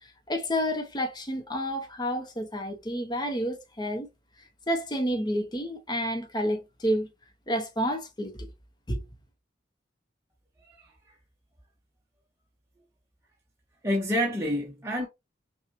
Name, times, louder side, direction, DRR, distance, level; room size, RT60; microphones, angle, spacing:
voice 1, 0.0-4.1 4.7-7.1 7.5-8.5 8.9-9.0, equal, 25° left, 0.9 m, -30 dB
voice 2, 13.8-15.1, equal, 15° right, 1.0 m, -28 dB
5.8 x 2.4 x 2.9 m
head